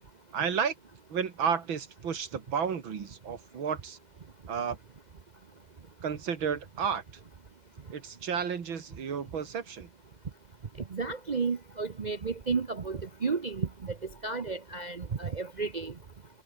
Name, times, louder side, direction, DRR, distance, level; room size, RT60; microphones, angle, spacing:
voice 1, 0.3-0.7 1.1-4.0 4.5-4.8 6.0-7.0 7.9-9.9, right 7 dB, 85° right, 2.8 m, -32 dB
voice 2, 10.9-13.9 14.2-15.9, right 4 dB, 70° right, 0.4 m, -32 dB
omnidirectional pair, 2.1 m